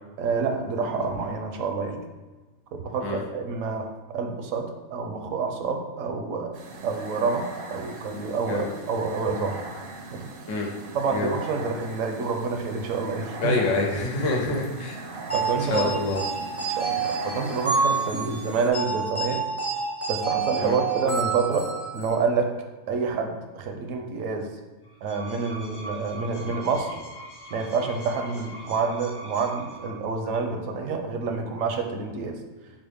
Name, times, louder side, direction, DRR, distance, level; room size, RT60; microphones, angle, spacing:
voice 1, 0.2-2.0 2.7-3.9 4.1-6.5 6.8-9.6 10.1-10.3 10.9-13.6 15.3-15.9 16.8-19.4 20.1-22.5 22.9-24.5 25.0-27.0 27.5-32.4, right 4 dB, 80° right, 4 dB, 1.0 m, -28 dB
sound 1, 6.5-18.7, right 2 dB, 60° right, 0.6 m, -40 dB
voice 2, 13.4-15.0 15.7-16.2 20.6-20.8, left 2 dB, 75° left, 0 dB, 1.2 m, -26 dB
sound 2, 15.3-22.2, right 5 dB, 15° left, 0.6 m, -28 dB
sound 3, 24.8-30.2, right 2 dB, 55° left, 1.2 m, -42 dB
4.1 x 3.8 x 3.4 m, 1.2 s
omnidirectional pair, 1.4 m